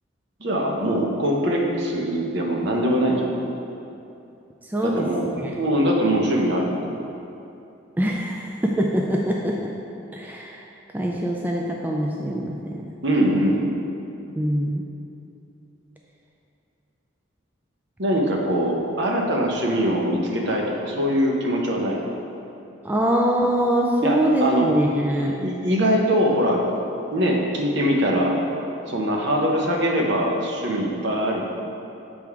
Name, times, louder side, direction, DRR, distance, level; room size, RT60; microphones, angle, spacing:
voice 1, 0.4-3.6 4.8-7.0 13.0-13.7 18.0-22.0 24.0-24.7 25.3-26.6 27.1-28.4 28.9-31.4, equal, 60° right, -1 dB, 0.8 m, -22 dB
voice 2, 4.6-5.1 5.4-5.6 8.0-9.7 10.1-10.6 10.9-12.8 14.4-14.8 22.8-25.3, equal, 10° right, -1 dB, 0.3 m, -23 dB
7.5 x 3.6 x 4.6 m, 2.7 s
head